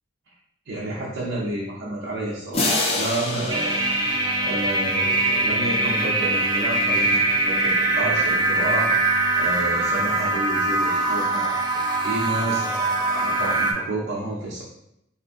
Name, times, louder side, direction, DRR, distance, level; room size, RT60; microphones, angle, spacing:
voice 1, 0.7-3.9 4.4-9.0 9.4-14.6, right 1 dB, 75° right, -5 dB, 0.6 m, -30 dB
sound 1, 2.5-5.4, left 2 dB, 30° left, 0.5 m, -28 dB
sound 2, 3.5-13.7, right 2 dB, 20° right, 0.3 m, -22 dB
3.6 x 2.5 x 2.5 m, 0.81 s
head